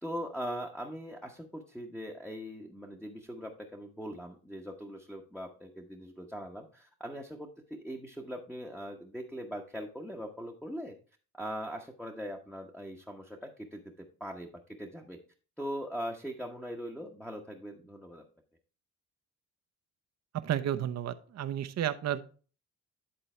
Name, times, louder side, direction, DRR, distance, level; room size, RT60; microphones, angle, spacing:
voice 1, 0.0-11.0 11.3-15.2 15.6-18.2, equal, 5° left, 0 dB, 1.0 m, -41 dB
voice 2, 20.4-22.2, right 11 dB, 60° right, 10 dB, 0.8 m, -32 dB
10.5 x 3.9 x 4.3 m, 0.38 s
cardioid pair, 90°, 30 cm